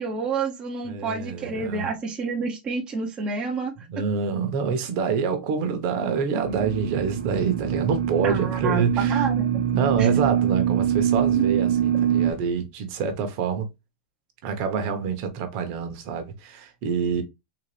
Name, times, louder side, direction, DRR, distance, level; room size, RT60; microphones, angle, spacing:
voice 1, 0.0-3.7 8.2-9.6 10.0-10.1, right 4 dB, 15° right, 0.6 m, -29 dB
voice 2, 0.8-1.9 3.8-9.3 9.7-13.7 14.4-17.2, right 6 dB, 40° right, 0.9 m, -26 dB
sound 1, 6.4-12.3, right 9 dB, 65° right, 0.7 m, -24 dB
3.9 x 2.5 x 3.1 m
supercardioid pair, 155°, 5 cm